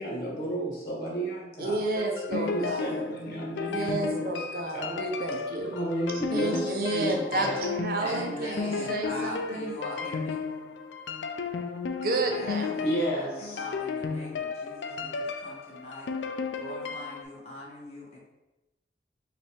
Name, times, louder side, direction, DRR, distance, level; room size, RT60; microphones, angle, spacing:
voice 1, 0.0-1.8 2.3-4.3 4.7-4.9 5.7-7.6 12.8-13.7, equal, 55° left, -3 dB, 1.3 m, -32 dB
voice 2, 1.6-3.1 3.6-5.7 6.3-9.8 12.0-12.8, right 2 dB, 55° right, 3 dB, 0.6 m, -31 dB
sound 1, 1.9-17.2, left 5 dB, 90° left, 0.4 m, -34 dB
voice 3, 8.0-10.4 12.1-16.1 16.5-18.2, left 1 dB, 40° left, -5 dB, 1.2 m, -41 dB
5.2 x 2.5 x 3.4 m, 1.0 s
head